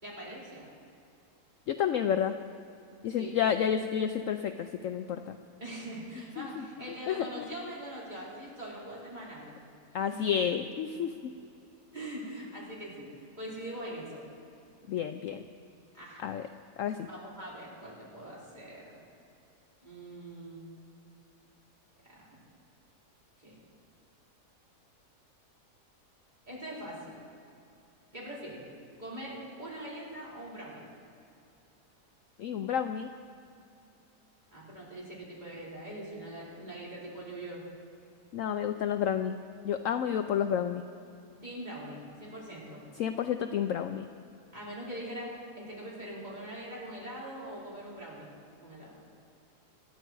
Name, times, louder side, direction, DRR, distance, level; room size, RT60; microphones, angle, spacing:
voice 1, 0.0-0.6 3.1-3.4 5.6-9.6 10.1-10.2 11.9-13.1 13.4-14.2 15.9-16.2 17.1-19.0 19.8-20.7 22.0-22.3 23.4-23.6 26.5-27.2 28.1-28.7 29.0-30.9 34.5-37.6 41.4-42.8 44.5-48.3 48.6-49.0, right 1 dB, 25° right, -7 dB, 4.9 m, -42 dB
voice 2, 1.7-2.3 3.0-5.4 6.4-6.6 7.1-7.3 9.9-11.3 14.9-15.4 16.2-16.4 16.8-17.1 32.4-33.1 38.3-39.4 39.6-40.8 43.0-44.0, left 8 dB, 65° left, 8 dB, 0.9 m, -30 dB
26.0 x 10.0 x 4.7 m, 2.7 s
omnidirectional pair, 1.7 m